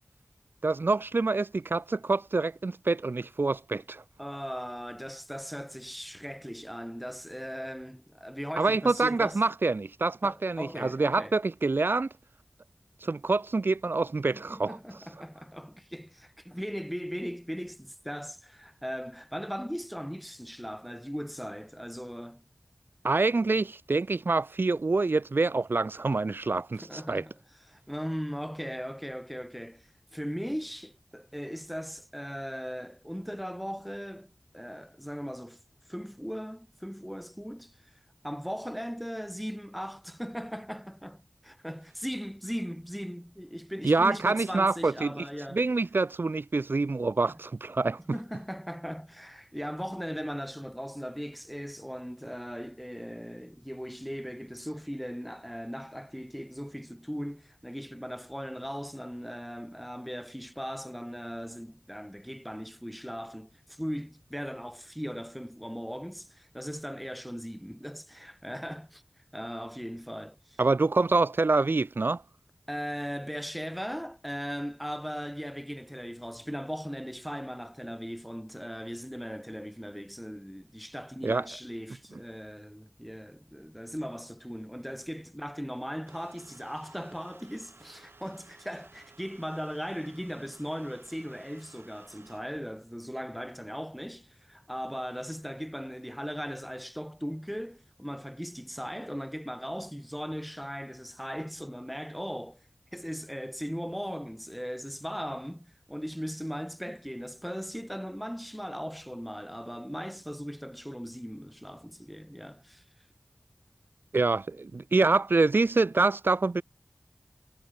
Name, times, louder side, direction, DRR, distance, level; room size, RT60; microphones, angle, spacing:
voice 1, 0.6-4.0 8.6-12.1 13.0-14.8 23.0-27.2 43.8-45.3 45.5-48.0 70.6-72.2 81.2-81.5 114.1-116.6, right 3 dB, 70° right, 0.8 m, -26 dB
voice 2, 4.2-9.4 10.2-11.3 14.3-22.4 26.7-27.4 27.7-35.6 35.9-37.9 38.2-45.6 48.1-69.0 69.3-70.6 72.7-102.6 102.9-112.8, equal, ahead, 3.0 m, -38 dB
sound 1, 86.1-92.4, right 3 dB, 85° right, 6.7 m, -57 dB
wide cardioid pair, 45°, 4 cm